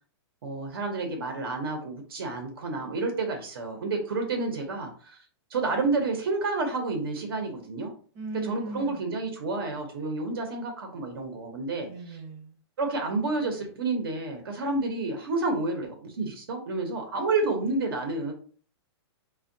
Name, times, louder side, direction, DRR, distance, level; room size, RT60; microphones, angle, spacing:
voice 1, 0.4-5.2 5.5-7.9 8.4-11.9 12.8-18.3, right 3 dB, 55° right, 3 dB, 0.7 m, -30 dB
voice 2, 8.1-9.1 11.8-12.6, right 2 dB, 25° right, 1 dB, 0.9 m, -38 dB
4.3 x 2.2 x 2.6 m, 0.44 s
hypercardioid pair, 175°, 15 cm